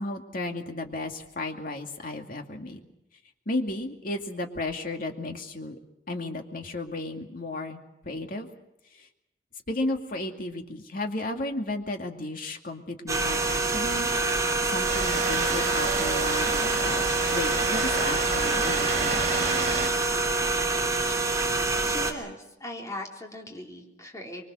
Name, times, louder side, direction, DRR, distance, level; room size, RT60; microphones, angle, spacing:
voice 1, 0.0-2.8 3.5-5.8 6.1-8.5 8.9-9.1 9.7-17.0 17.3-19.3, left 2 dB, 55° left, 4 dB, 2.4 m, -34 dB
sound 1, 13.1-22.1, right 3 dB, 20° right, 2.8 m, -26 dB
Seaside Afternoon, 14.9-19.9, right 4 dB, 45° right, 3.6 m, -31 dB
voice 2, 21.8-24.4, left 1 dB, 20° left, 0 dB, 3.9 m, -39 dB
25.0 x 23.5 x 6.4 m, 0.86 s
head